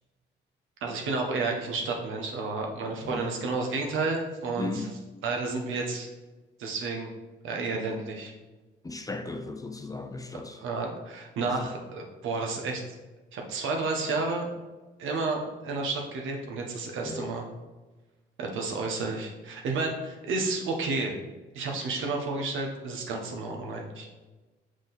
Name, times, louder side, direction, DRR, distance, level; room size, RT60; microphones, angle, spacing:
voice 1, 0.8-4.9 5.2-6.1 6.6-7.1 7.4-8.3 10.6-12.8 13.3-14.5 15.0-17.4 18.4-21.1 21.5-24.1, right 3 dB, 80° right, 1.2 m, -31 dB
voice 2, 4.6-4.9 8.8-10.6 11.6-11.7 17.0-17.3, left 3 dB, 15° left, 0.6 m, -36 dB
6.3 x 4.8 x 4.1 m
cardioid pair, 90°, 20 cm